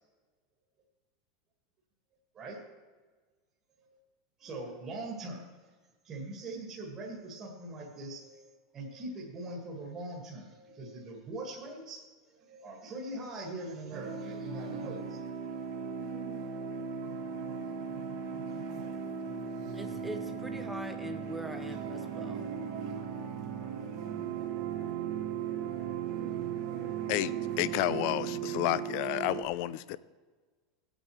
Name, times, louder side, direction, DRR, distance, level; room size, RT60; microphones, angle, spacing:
voice 1, 4.4-5.7 6.0-12.0 12.3-15.2, right 2 dB, 20° right, -3 dB, 1.8 m, -42 dB
sound 1, 13.9-29.4, right 7 dB, 50° right, 1.3 m, -37 dB
voice 2, 19.7-22.5, right 1 dB, 5° right, 6 dB, 0.8 m, -42 dB
voice 3, 27.1-30.0, left 16 dB, 45° left, 17 dB, 0.4 m, -31 dB
17.5 x 8.9 x 3.2 m, 1.4 s
supercardioid pair, 170°, 2 cm